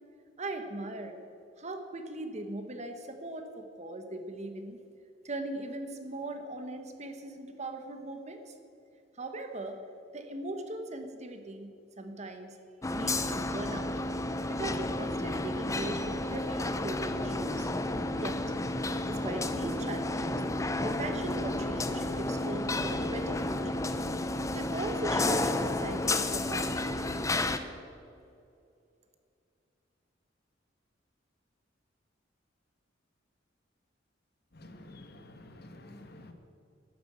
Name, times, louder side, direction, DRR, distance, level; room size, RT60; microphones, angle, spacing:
voice 1, 0.4-1.1 1.6-4.8 5.2-8.5 9.2-9.8 10.1-12.6 12.9-14.0 14.5-17.7 18.1-18.4 19.1-20.4 20.8-23.8 24.5-27.4, right 2 dB, 35° right, 6 dB, 1.3 m, -39 dB
sound 1, 12.8-27.6, left 2 dB, 15° left, 0.7 m, -31 dB
voice 2, 34.5-36.3, left 1 dB, 55° left, 6 dB, 1.6 m, -50 dB
12.5 x 11.5 x 8.0 m, 2.5 s
head